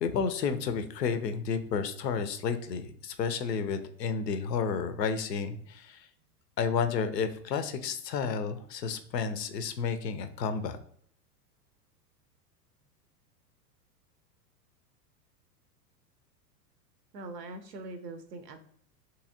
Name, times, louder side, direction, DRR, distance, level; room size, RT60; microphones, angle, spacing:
voice 1, 0.0-6.1 6.6-10.8, left 6 dB, 80° left, 10 dB, 0.6 m, -31 dB
voice 2, 17.1-18.6, right 2 dB, 75° right, 7 dB, 0.6 m, -42 dB
2.8 x 2.7 x 2.6 m, 0.65 s
figure-of-eight pair, 95°, 48 cm